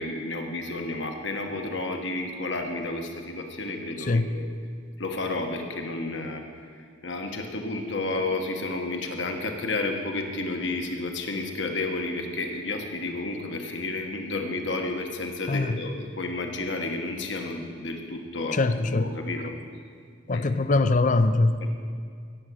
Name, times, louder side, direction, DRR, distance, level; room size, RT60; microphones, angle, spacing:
voice 1, 0.0-4.5 5.0-19.5 20.3-20.4 21.6-21.7, left 2 dB, 65° left, 3 dB, 1.4 m, -31 dB
voice 2, 18.5-19.1 20.3-21.6, left 3 dB, 40° left, 12 dB, 0.5 m, -22 dB
17.0 x 7.2 x 6.4 m, 2.2 s
head